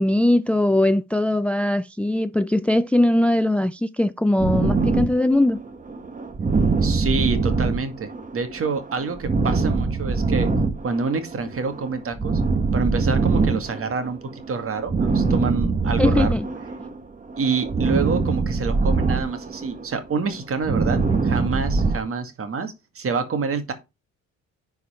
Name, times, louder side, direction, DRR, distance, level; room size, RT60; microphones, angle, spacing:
voice 1, 0.0-5.6 16.0-16.5, left 1 dB, 5° left, 0.4 m, -20 dB
sound 1, 4.4-17.0 17.3-22.0, right 4 dB, 25° right, 1.5 m, -23 dB
voice 2, 6.8-10.5 10.8-12.4 12.7-16.3 17.4-23.7, right 4 dB, 45° right, 2.1 m, -27 dB
10.5 x 4.7 x 4.4 m
cardioid pair, 90°, 30 cm